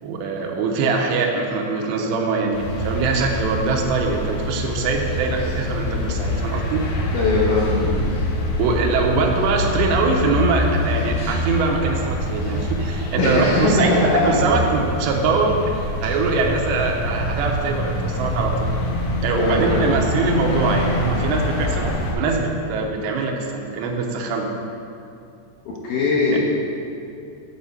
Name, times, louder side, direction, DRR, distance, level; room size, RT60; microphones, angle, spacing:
voice 1, 0.0-6.9 8.6-14.0 14.3-18.7 19.2-24.5 26.3-26.4, right 4 dB, 85° right, 1 dB, 3.0 m, -23 dB
sound 1, 2.5-22.1, left 1 dB, 90° left, 1.5 m, -25 dB
voice 2, 7.1-7.8 13.2-14.4 19.4-19.9 25.7-26.4, left 2 dB, 70° left, -5 dB, 2.1 m, -20 dB
8.6 x 4.9 x 6.7 m, 2.5 s
omnidirectional pair, 5.0 m